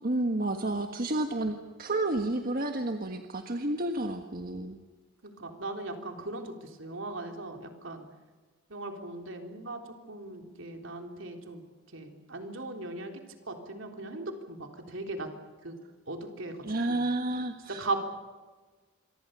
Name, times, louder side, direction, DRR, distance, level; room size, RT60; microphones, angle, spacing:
voice 1, 0.0-4.8 16.6-18.0, right 2 dB, 45° right, 5 dB, 1.5 m, -31 dB
voice 2, 5.2-8.1 8.7-9.8 10.1-11.6 11.9-13.1 13.5-15.3 15.6-15.8 16.1-16.5 16.9-17.1 17.7-18.0, right 2 dB, 65° right, 4 dB, 3.7 m, -38 dB
27.0 x 24.0 x 6.8 m, 1.4 s
head